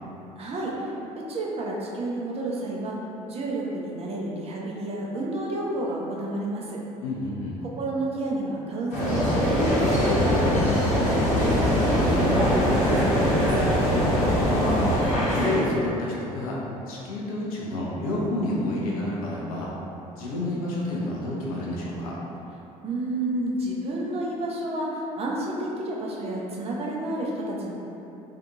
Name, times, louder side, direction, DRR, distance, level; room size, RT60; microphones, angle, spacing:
voice 1, 0.4-3.0 3.3-6.8 7.8-9.5 9.9-13.9 22.8-27.8, right 1 dB, 35° right, -3 dB, 0.6 m, -30 dB
voice 2, 7.0-7.6 14.3-19.7 20.2-22.2, left 1 dB, 70° left, -5 dB, 0.5 m, -30 dB
sound 1, 8.9-15.6, left 1 dB, 40° left, 0.9 m, -24 dB
sound 2, 9.0-15.0, equal, 85° right, 0.5 m, -25 dB
2.7 x 2.4 x 3.7 m, 2.9 s
figure-of-eight pair, 55°, 19 cm